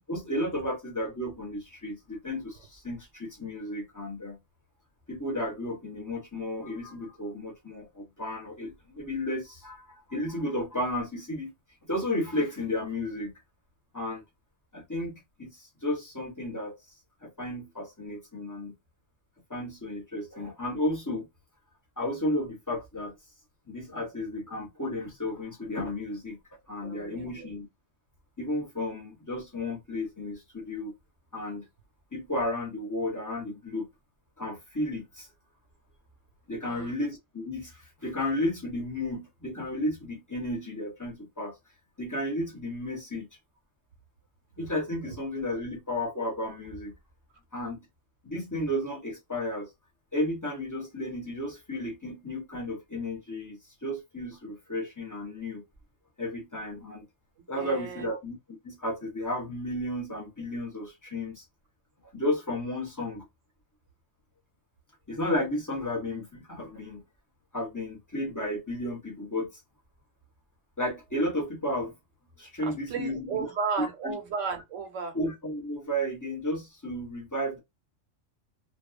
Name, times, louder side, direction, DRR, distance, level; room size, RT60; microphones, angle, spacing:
voice 1, 0.1-4.4 5.1-11.5 11.8-13.3 13.9-14.2 14.7-16.7 17.2-18.7 19.5-21.3 22.0-23.1 23.7-26.4 26.7-27.7 28.4-30.9 31.3-31.7 32.1-33.9 34.4-35.3 36.5-41.5 42.0-43.3 44.6-46.9 47.5-47.8 48.2-49.7 50.1-55.6 56.2-57.1 57.5-58.4 58.6-61.4 62.1-63.2 65.1-67.0 67.5-69.6 70.8-71.9 72.4-73.4 73.8-74.1 75.1-77.6, left 1 dB, 20° left, 0.7 m, -33 dB
voice 2, 26.8-27.5 36.6-37.0 45.0-45.2 57.5-58.1 72.6-75.2, right 5 dB, 80° right, 1.1 m, -34 dB
2.7 x 2.2 x 2.3 m
omnidirectional pair, 1.3 m